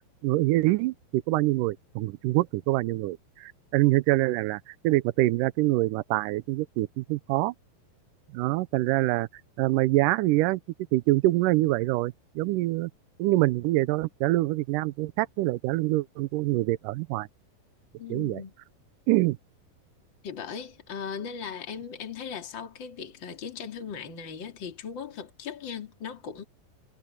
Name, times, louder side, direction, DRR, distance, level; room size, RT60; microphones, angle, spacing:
voice 1, 0.2-7.5 8.3-9.3 9.6-10.6 10.9-12.9 13.2-17.3 18.1-18.4 19.1-19.4, right 18 dB, 80° right, 2.1 m, -25 dB
voice 2, 18.0-18.5 20.2-26.4, left 7 dB, 35° left, 2.9 m, -38 dB
omnidirectional pair, 4.2 m